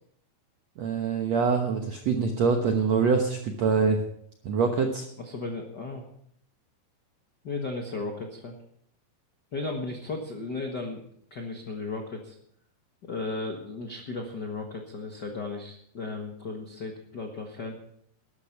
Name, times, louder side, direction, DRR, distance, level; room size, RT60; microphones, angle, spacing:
voice 1, 0.8-4.0 4.4-5.0, right 5 dB, 65° right, 4 dB, 1.7 m, -24 dB
voice 2, 5.2-6.1 7.4-8.6 9.5-11.0 11.3-12.3 13.0-17.8, left 3 dB, 85° left, 2 dB, 0.9 m, -35 dB
13.0 x 12.0 x 5.9 m, 0.65 s
omnidirectional pair, 4.5 m